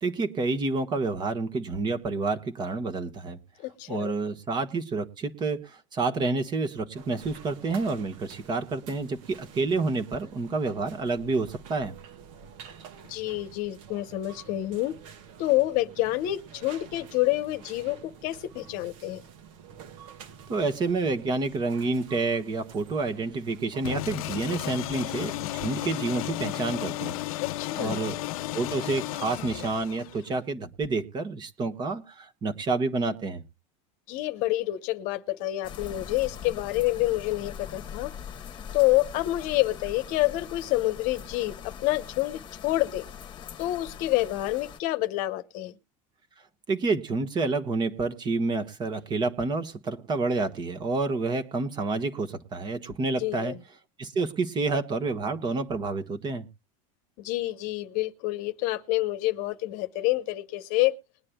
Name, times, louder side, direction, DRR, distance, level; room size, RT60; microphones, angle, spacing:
voice 1, 0.0-3.4 3.9-11.9 20.5-27.2 27.8-28.1 28.5-33.4 46.7-53.5 54.0-56.5, right 3 dB, 25° right, 1.4 m, -29 dB
voice 2, 3.6-4.1 13.1-14.9 15.4-19.2 27.4-28.0 34.1-38.1 38.7-43.1 43.6-45.8 53.2-53.6 57.2-61.0, left 17 dB, 50° left, 1.0 m, -28 dB
sound 1, 6.9-24.0, right 7 dB, 65° right, 1.9 m, -49 dB
sound 2, 23.9-30.4, left 17 dB, 80° left, 0.6 m, -34 dB
sound 3, 35.6-44.8, left 8 dB, 25° left, 1.3 m, -42 dB
21.0 x 9.6 x 2.3 m
supercardioid pair, 150°, 18 cm